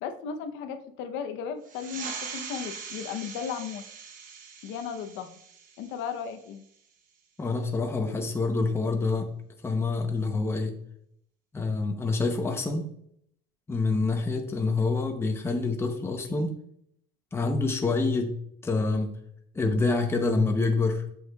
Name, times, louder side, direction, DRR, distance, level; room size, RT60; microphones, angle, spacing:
voice 1, 0.0-3.8 4.6-5.4 5.8-6.6, left 7 dB, 75° left, 7 dB, 0.8 m, -35 dB
sound 1, 1.6-6.8, right 6 dB, 45° right, 1.0 m, -42 dB
voice 2, 7.4-9.3 9.6-10.8 11.5-12.9 13.7-16.5 17.3-18.4 18.6-19.2 19.5-21.0, left 3 dB, 10° left, 3 dB, 0.7 m, -26 dB
7.9 x 6.3 x 2.3 m, 0.69 s
cardioid pair, 160°, 20 cm